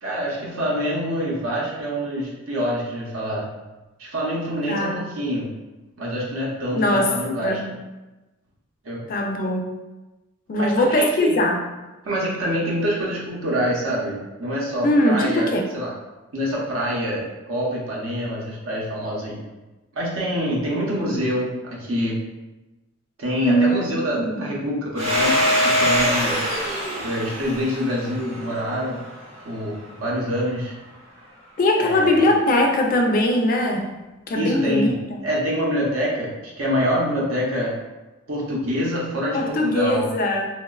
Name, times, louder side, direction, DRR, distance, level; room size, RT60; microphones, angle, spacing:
voice 1, 0.0-3.5 4.0-5.5 6.0-7.6 8.8-9.0 10.6-11.3 12.0-15.5 15.7-15.9 16.3-19.4 19.9-21.5 21.8-22.2 23.2-26.4 26.7-29.0 29.4-30.7 31.8-32.2 34.3-35.0 35.2-37.7 38.3-40.1, equal, 70° right, -5 dB, 0.6 m, -26 dB
voice 2, 4.7-5.0 6.7-7.1 7.4-7.7 9.1-9.8 10.5-11.6 14.8-15.6 23.4-23.8 24.2-24.5 31.6-33.9 34.3-34.9 39.3-40.5, left 1 dB, 40° left, 2 dB, 0.3 m, -20 dB
Domestic sounds home sounds, 25.0-29.4, equal, 30° right, 0.5 m, -23 dB
2.9 x 2.1 x 2.2 m, 1.1 s
head